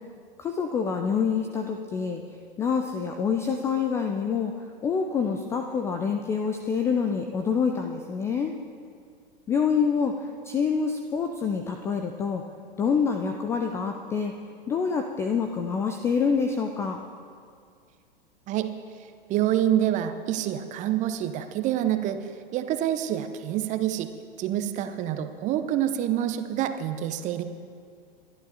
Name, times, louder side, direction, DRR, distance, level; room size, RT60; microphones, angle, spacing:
voice 1, 0.4-2.2 2.6-4.5 4.8-8.5 9.5-10.1 10.5-12.4 12.8-14.3 14.7-17.0, left 6 dB, 10° left, 4 dB, 0.3 m, -26 dB
voice 2, 19.3-22.2 22.5-24.1 24.4-27.4, right 11 dB, 25° right, 9 dB, 0.7 m, -27 dB
22.5 x 11.5 x 2.8 m, 2.2 s
figure-of-eight pair, 100°, 29 cm